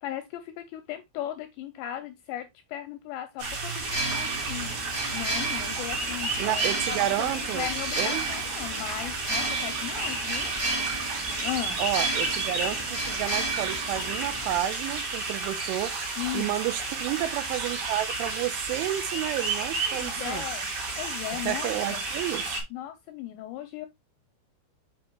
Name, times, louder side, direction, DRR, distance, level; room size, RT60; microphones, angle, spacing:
voice 1, 0.0-7.3 7.5-10.5 11.4-11.8 16.2-16.5 19.9-20.7 21.0-22.0 22.7-23.9, left 12 dB, 80° left, 2.6 m, -37 dB
sound 1, 3.4-22.6, right 3 dB, 45° right, 3.3 m, -32 dB
sound 2, 3.8-14.6, right 2 dB, 10° right, 1.6 m, -33 dB
voice 2, 6.4-7.7 8.0-8.3 11.8-16.0 16.3-20.4 21.4-22.4, right 13 dB, 80° right, 3.1 m, -30 dB
7.0 x 5.4 x 3.0 m
omnidirectional pair, 5.7 m